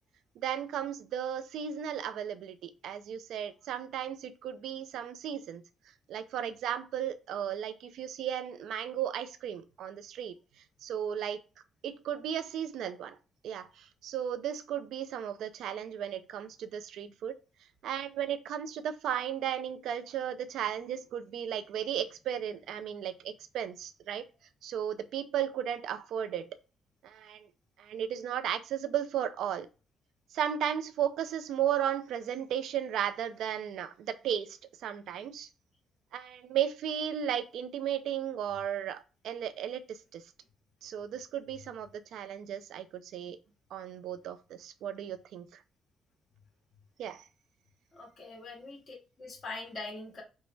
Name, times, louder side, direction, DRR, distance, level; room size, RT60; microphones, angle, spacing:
voice 1, 0.4-5.6 6.1-10.3 10.8-11.4 11.8-13.2 13.4-17.4 17.8-24.2 24.6-26.6 27.0-27.5 27.8-29.7 30.3-35.5 36.1-40.2 40.8-43.4 43.7-45.5 47.0-47.2, right 9 dB, 80° right, 0.4 m, -35 dB
voice 2, 47.9-50.2, left 3 dB, 40° left, 1.7 m, -43 dB
5.2 x 2.1 x 3.2 m
cardioid pair, 90°, 0 cm